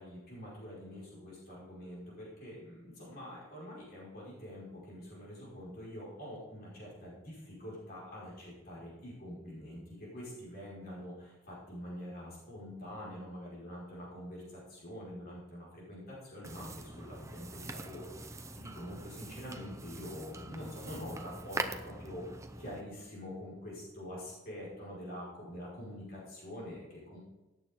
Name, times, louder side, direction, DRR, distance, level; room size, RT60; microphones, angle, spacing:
voice 1, 0.0-27.2, left 1 dB, 45° left, -7 dB, 5.3 m, -45 dB
sound 1, 16.4-22.8, right 2 dB, 15° right, 0.7 m, -43 dB
18.5 x 9.0 x 3.8 m, 1.1 s
head